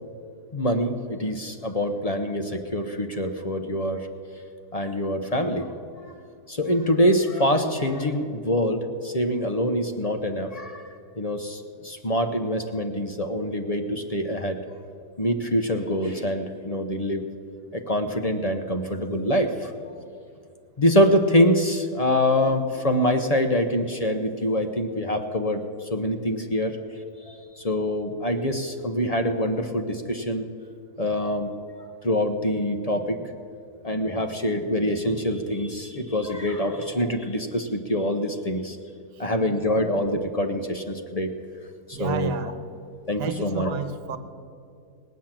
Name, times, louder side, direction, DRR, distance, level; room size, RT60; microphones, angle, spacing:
voice 1, 0.5-4.1 4.7-5.7 6.5-14.6 15.2-17.3 17.7-19.8 20.8-26.8 27.2-30.4 31.0-31.5 32.0-33.3 33.8-38.8 39.2-41.3 41.9-42.3 43.0-43.8, equal, 40° left, 6 dB, 0.6 m, -25 dB
voice 2, 41.9-42.6 43.2-44.2, right 5 dB, 85° right, 10 dB, 1.5 m, -31 dB
19.5 x 8.3 x 7.4 m, 2.4 s
omnidirectional pair, 1.7 m